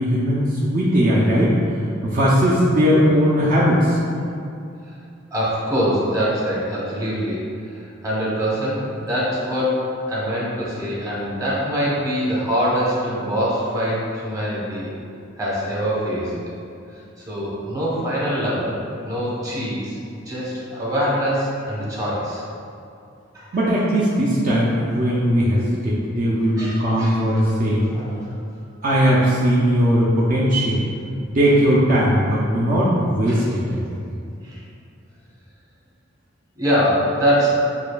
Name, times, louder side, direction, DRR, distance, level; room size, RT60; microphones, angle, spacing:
voice 1, 0.0-1.6 2.0-4.0 23.5-27.9 28.8-30.8 31.3-33.8, equal, 45° right, -7 dB, 0.5 m, -18 dB
voice 2, 5.3-9.7 10.1-14.9 15.4-16.3 17.2-20.0 20.3-22.4 23.3-23.5 26.6-27.2 27.9-28.2 33.3-33.4 34.4-34.6 36.6-37.5, equal, 15° right, -7 dB, 0.9 m, -23 dB
6.7 x 2.5 x 2.3 m, 2.6 s
head